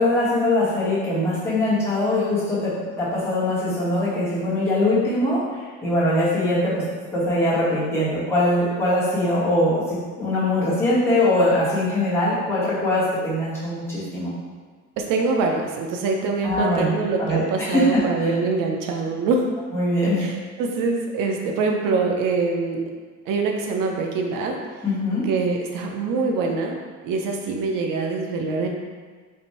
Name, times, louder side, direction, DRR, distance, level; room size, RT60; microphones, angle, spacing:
voice 1, 0.0-6.8 7.1-14.3 16.4-16.9 17.2-18.3 19.7-20.2 24.8-25.2, left 1 dB, 10° left, -11 dB, 1.3 m, -22 dB
voice 2, 15.0-19.4 20.2-20.3 20.6-22.8 23.3-24.6 25.2-26.8 27.0-28.7, right 4 dB, 90° right, 2 dB, 0.6 m, -24 dB
3.5 x 2.6 x 4.2 m, 1.5 s
cardioid pair, 160°, 32 cm